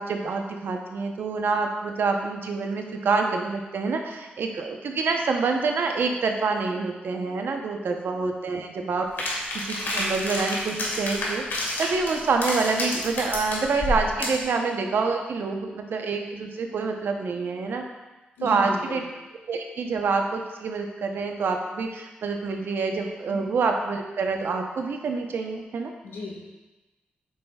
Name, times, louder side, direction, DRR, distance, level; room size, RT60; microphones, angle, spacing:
voice 1, 0.0-17.8 18.4-19.0 19.5-25.9, right 4 dB, 70° right, 3 dB, 0.8 m, -27 dB
sound 1, 9.2-14.4, left 1 dB, 70° left, 1.8 m, -29 dB
voice 2, 18.4-19.0 23.3-23.4 26.0-26.4, left 2 dB, 85° left, -3 dB, 1.6 m, -34 dB
8.5 x 5.6 x 2.4 m, 1.1 s
cardioid pair, 60°, 4 cm